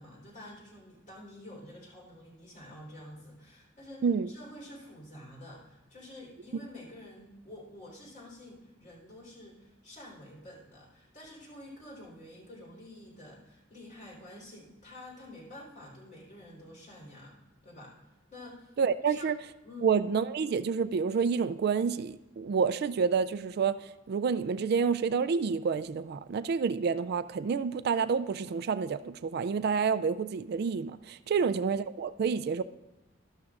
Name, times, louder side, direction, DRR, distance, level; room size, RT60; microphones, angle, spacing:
voice 1, 0.0-18.0 18.3-18.7 19.0-19.2 19.6-19.9 31.3-31.4, left 1 dB, 40° left, 3.8 m, -49 dB
voice 2, 18.8-19.4 19.8-23.8 24.1-32.6, right 6 dB, 55° right, 0.3 m, -28 dB
13.0 x 12.0 x 2.5 m
head